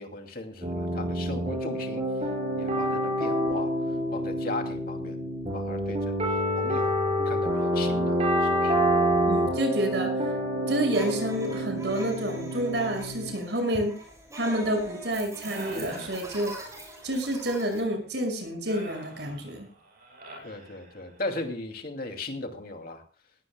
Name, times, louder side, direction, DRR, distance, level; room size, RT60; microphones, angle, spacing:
voice 1, 0.0-2.0 2.6-3.7 4.1-5.2 5.5-6.1 6.6-6.9 7.2-8.8 20.4-23.0, left 2 dB, 50° left, 4 dB, 2.6 m, -37 dB
sound 1, 0.6-13.3, equal, 35° right, 5.9 m, -27 dB
voice 2, 9.3-10.2 10.7-14.0 14.3-16.7 17.0-19.7, right 1 dB, 70° right, 5 dB, 5.7 m, -29 dB
sound 2, 10.9-17.8, right 1 dB, 15° right, 6.4 m, -43 dB
sound 3, 15.4-17.0 18.7-21.3, right 1 dB, 50° right, 6.8 m, -44 dB
19.5 x 17.0 x 2.2 m, 0.38 s
head